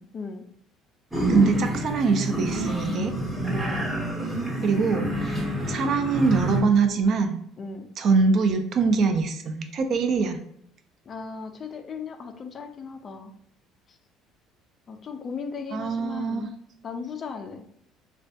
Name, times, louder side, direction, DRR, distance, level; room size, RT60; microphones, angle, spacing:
voice 1, 0.1-0.4 3.5-3.8 7.6-7.9 11.1-13.3 13.9-14.0 14.9-16.5 16.8-17.6, left 5 dB, 30° left, 6 dB, 0.3 m, -36 dB
sound 1, 1.1-6.6, right 1 dB, 10° right, 0.7 m, -28 dB
voice 2, 1.3-3.1 4.6-5.1 5.7-7.4 8.0-10.4 15.7-16.5, right 4 dB, 45° right, 6 dB, 0.4 m, -23 dB
3.2 x 2.2 x 2.7 m, 0.68 s
cardioid pair, 140°, 0 cm